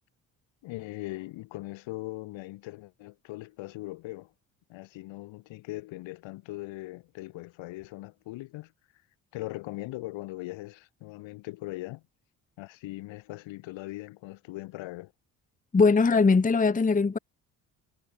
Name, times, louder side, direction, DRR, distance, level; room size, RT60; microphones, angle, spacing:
voice 1, 0.6-4.3 4.7-8.7 9.3-12.0 12.6-15.1, left 19 dB, 75° left, 7.8 m, -40 dB
voice 2, 15.7-17.2, left 4 dB, 15° left, 1.0 m, -21 dB
hypercardioid pair, 55°, 46 cm